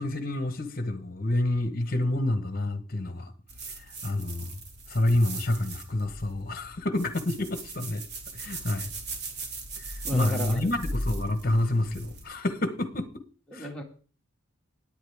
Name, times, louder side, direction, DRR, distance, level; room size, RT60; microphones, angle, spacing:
voice 1, 0.0-3.3 3.8-4.5 4.9-8.0 8.3-8.9 9.7-13.2 13.5-13.7, left 1 dB, 45° left, 1.2 m, -28 dB
sound 1, 3.5-12.2, right 2 dB, 50° right, 2.7 m, -38 dB
voice 2, 10.0-10.7 12.3-12.4 13.5-13.8, equal, 5° left, 2.0 m, -34 dB
18.5 x 8.7 x 3.5 m
head